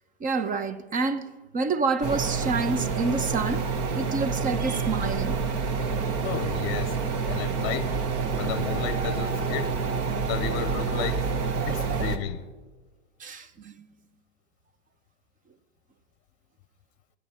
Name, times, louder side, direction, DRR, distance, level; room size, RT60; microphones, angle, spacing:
voice 1, 0.2-1.2 1.5-3.6 4.0-5.4 11.6-12.0 13.2-13.9, right 4 dB, 25° right, 1.0 m, -28 dB
sound 1, 2.0-12.2, right 5 dB, 45° right, 1.5 m, -28 dB
voice 2, 6.2-7.0 7.3-7.9 8.4-9.8 10.2-11.3 11.7-12.5, left 12 dB, 45° left, 0.8 m, -33 dB
27.0 x 9.5 x 4.4 m
hypercardioid pair, 120°, 34 cm